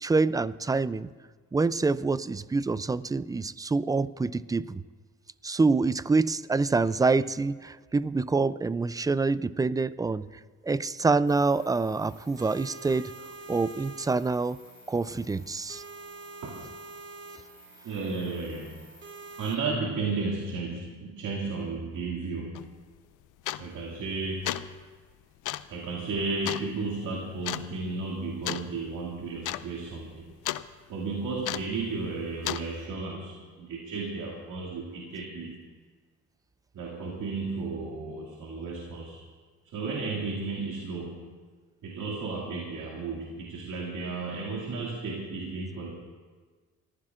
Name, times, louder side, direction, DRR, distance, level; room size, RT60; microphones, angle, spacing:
voice 1, 0.0-1.1 1.5-4.8 5.4-10.3 10.6-13.1 13.5-14.6 14.9-15.8, right 3 dB, 10° right, 17 dB, 0.3 m, -26 dB
sound 1, 11.3-19.6, right 3 dB, 40° right, 2.5 m, -47 dB
voice 2, 17.8-18.8 19.4-22.7 23.6-24.6 25.7-30.3 30.9-35.5 36.7-39.2 39.7-41.3 41.8-45.9, right 3 dB, 75° right, -2 dB, 2.3 m, -33 dB
sound 2, 22.5-22.7 23.4-23.8 24.3-24.7 25.4-25.7 26.4-26.7 27.4-27.7 28.4-28.7 29.0-29.1 29.4-29.7 29.9-30.7 31.4-31.8 32.4-32.7, left 15 dB, 90° left, 0.5 m, -33 dB
24.5 x 15.0 x 2.5 m, 1.5 s
cardioid pair, 90°, 30 cm